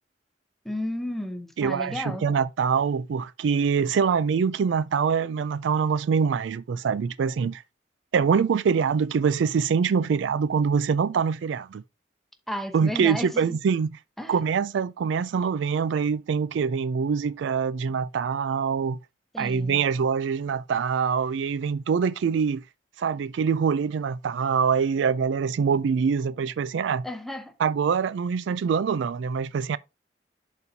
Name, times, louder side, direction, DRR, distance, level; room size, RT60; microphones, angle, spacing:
voice 1, 0.6-2.2 12.5-13.6 14.2-14.4 19.3-19.8 27.0-27.5, left 1 dB, ahead, 0.8 m, -33 dB
voice 2, 1.6-7.6 8.1-11.8 12.7-14.0 14.3-19.0 19.4-22.6 23.0-27.1 27.6-29.8, right 6 dB, 75° right, 0.3 m, -24 dB
11.0 x 4.2 x 2.7 m
head